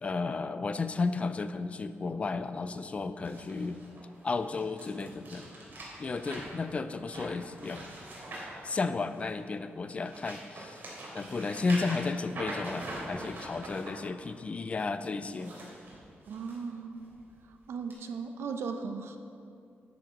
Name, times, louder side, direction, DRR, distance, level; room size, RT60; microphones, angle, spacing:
voice 1, 0.0-3.8 4.2-5.5 6.0-7.9 8.6-10.8 11.1-15.5, left 4 dB, 30° left, 11 dB, 0.4 m, -33 dB
sound 1, 3.2-9.4 9.8-13.9 15.2-16.6 17.0-17.3 17.9-18.0, right 1 dB, 50° right, 3.2 m, -43 dB
voice 2, 16.3-17.0 17.5-19.2, right 5 dB, 80° right, 6 dB, 0.9 m, -37 dB
12.5 x 7.9 x 5.2 m, 2.4 s
wide cardioid pair, 170°, 4 cm